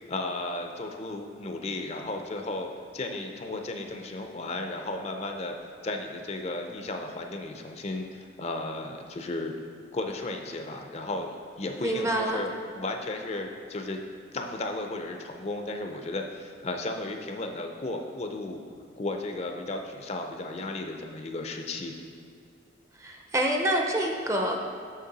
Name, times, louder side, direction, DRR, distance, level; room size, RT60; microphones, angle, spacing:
voice 1, 0.0-5.5 5.8-9.6 9.9-14.0 14.3-18.6 19.0-22.0, left 2 dB, 35° left, 4 dB, 0.5 m, -34 dB
voice 2, 11.8-12.4 22.9-24.6, right 1 dB, 15° right, 2 dB, 0.5 m, -27 dB
6.6 x 6.5 x 4.0 m, 2.4 s
head